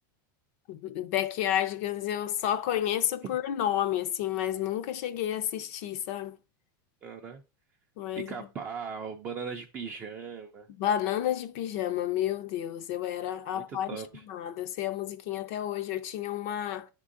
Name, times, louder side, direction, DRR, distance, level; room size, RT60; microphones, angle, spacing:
voice 1, 0.7-6.4 8.0-8.3 10.8-14.0 14.3-16.9, left 11 dB, 45° left, 0.4 m, -31 dB
voice 2, 7.0-7.4 8.1-10.7 13.5-14.2, right 6 dB, 15° right, 0.4 m, -39 dB
10.5 x 3.7 x 2.4 m
supercardioid pair, 175°, 11 cm